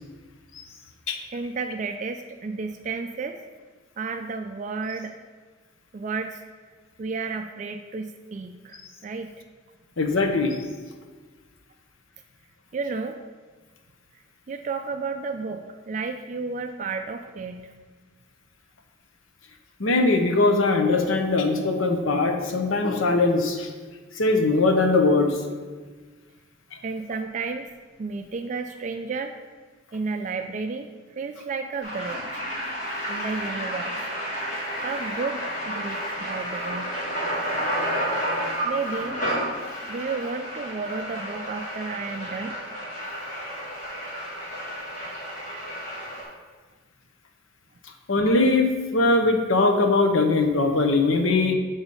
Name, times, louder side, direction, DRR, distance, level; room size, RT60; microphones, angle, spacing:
voice 1, 1.3-3.4 4.0-5.2 5.9-6.4 7.0-9.3 12.7-13.2 14.5-17.7 26.8-27.7 28.0-29.4 29.9-32.4 33.1-34.0 34.8-36.9 38.6-39.2 39.6-42.6, right 4 dB, 40° right, 6 dB, 0.3 m, -32 dB
voice 2, 10.0-10.6 19.8-23.7 24.2-25.4 48.1-51.5, left 3 dB, 90° left, 5 dB, 0.9 m, -21 dB
sound 1, 31.8-46.2, equal, 40° left, 2.3 m, -31 dB
7.9 x 3.9 x 5.4 m, 1.4 s
head